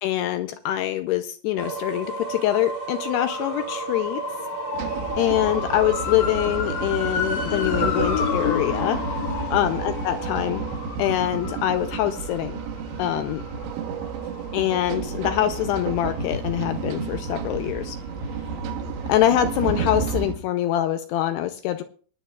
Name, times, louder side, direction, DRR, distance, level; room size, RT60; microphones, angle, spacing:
voice 1, 0.0-4.2 5.2-9.0 9.5-10.6 11.0-12.6 13.0-13.4 14.5-18.0 19.1-21.8, left 13 dB, 80° left, 9 dB, 2.5 m, -24 dB
sound 1, 1.6-13.4, right 4 dB, 55° right, 2.3 m, -35 dB
sound 2, 3.3-17.0 17.4-20.0 20.2-20.3, left 7 dB, 60° left, 2.2 m, -33 dB
sound 3, 4.7-20.4, right 5 dB, 80° right, 3.4 m, -31 dB
24.5 x 9.8 x 2.4 m, 0.41 s
omnidirectional pair, 5.2 m